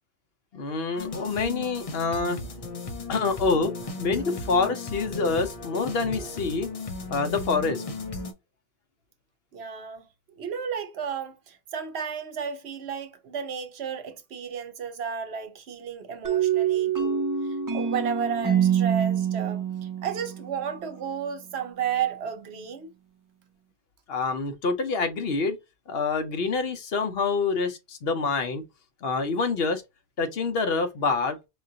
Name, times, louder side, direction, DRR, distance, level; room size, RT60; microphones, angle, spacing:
voice 1, 0.5-2.4 3.1-6.7 7.1-7.8 24.1-25.6 25.9-28.6 29.0-29.8 30.2-31.4, left 4 dB, 65° left, 0.9 m, -26 dB
sound 1, 1.0-8.3, left 3 dB, 40° left, 0.6 m, -36 dB
voice 2, 9.5-10.1 10.4-22.9, right 7 dB, 70° right, 1.0 m, -33 dB
sound 2, 16.2-20.9, right 8 dB, 25° right, 0.5 m, -25 dB
4.8 x 2.5 x 2.7 m
omnidirectional pair, 1.1 m